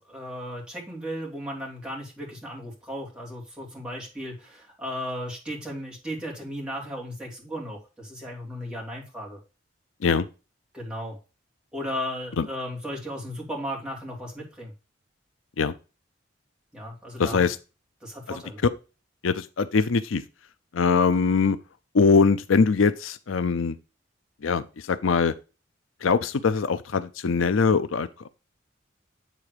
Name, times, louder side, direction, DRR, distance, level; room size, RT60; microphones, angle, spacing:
voice 1, 0.0-9.4 10.7-11.2 11.7-14.7 16.7-17.5 18.0-18.6, equal, 5° right, 2.7 m, -35 dB
voice 2, 17.2-17.6 18.3-18.4 19.2-20.2 20.7-21.6 21.9-23.8 24.4-25.3 26.0-28.3, left 5 dB, 85° left, 0.6 m, -22 dB
8.9 x 3.8 x 4.8 m
head